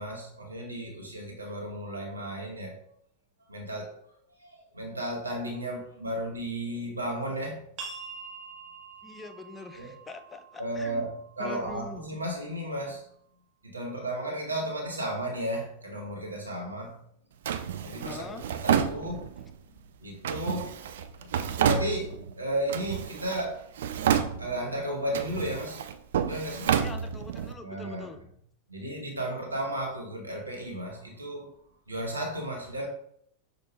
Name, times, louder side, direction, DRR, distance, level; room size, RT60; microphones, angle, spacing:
voice 1, 0.0-2.8 3.5-4.0 4.3-7.7 9.7-9.9 10.6-11.1 11.4-13.1 13.6-17.0 17.6-19.2 20.0-20.8 21.6-23.7 24.4-25.8 26.2-26.7 27.6-28.1 28.7-31.5 31.9-32.9, right 1 dB, 80° right, 0 dB, 1.1 m, -34 dB
sound 1, 7.8-13.2, right 5 dB, 40° right, 1.2 m, -47 dB
voice 2, 9.0-11.1 11.4-12.1 18.0-18.4 26.8-28.2, left 3 dB, 15° left, 7 dB, 0.4 m, -43 dB
Drawer open or close, 17.5-19.5 20.2-22.3 22.7-23.5 23.7-24.7 25.1-27.5, right 8 dB, 60° right, 0.3 m, -29 dB
6.0 x 2.5 x 3.2 m, 0.66 s
figure-of-eight pair, 90°, 0 cm